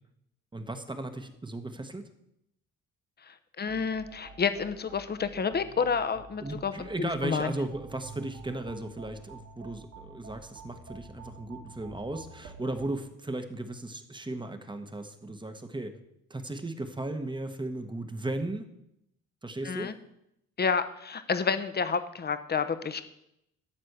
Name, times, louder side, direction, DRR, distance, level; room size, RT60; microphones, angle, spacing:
voice 1, 0.5-2.1 6.4-15.9 16.3-18.7 19.4-19.9, right 2 dB, 15° right, 7 dB, 1.1 m, -36 dB
voice 2, 3.6-6.7 7.0-7.5 19.6-19.9 20.6-23.0, left 6 dB, 35° left, 11 dB, 0.9 m, -29 dB
sound 1, 3.7-12.9, right 4 dB, 80° right, 2.2 m, -49 dB
13.0 x 4.3 x 7.9 m, 0.80 s
cardioid pair, 90°, 30 cm